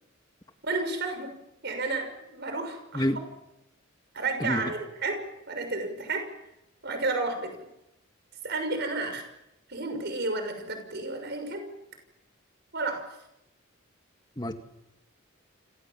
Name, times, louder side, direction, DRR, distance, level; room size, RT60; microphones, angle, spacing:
voice 1, 0.6-1.3 1.6-3.1 4.1-5.2 5.5-6.3 6.8-7.6 8.4-9.2 9.7-11.6 12.7-13.1, right 3 dB, 50° right, 6 dB, 6.2 m, -31 dB
voice 2, 4.4-4.7 14.4-14.5, left 1 dB, 20° left, 6 dB, 2.0 m, -28 dB
30.0 x 26.0 x 7.4 m, 0.89 s
head